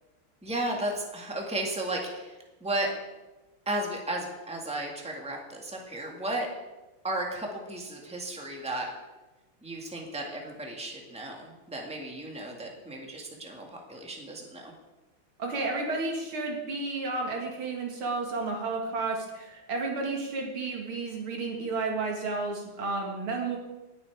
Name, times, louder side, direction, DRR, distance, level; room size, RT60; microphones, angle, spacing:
voice 1, 0.4-2.3 2.6-2.9 3.6-6.5 7.0-8.9 9.6-14.7, right 1 dB, 5° right, 0 dB, 1.8 m, -34 dB
voice 2, 15.4-23.6, right 3 dB, 85° right, 1 dB, 2.9 m, -32 dB
19.0 x 7.3 x 4.7 m, 1.1 s
omnidirectional pair, 2.3 m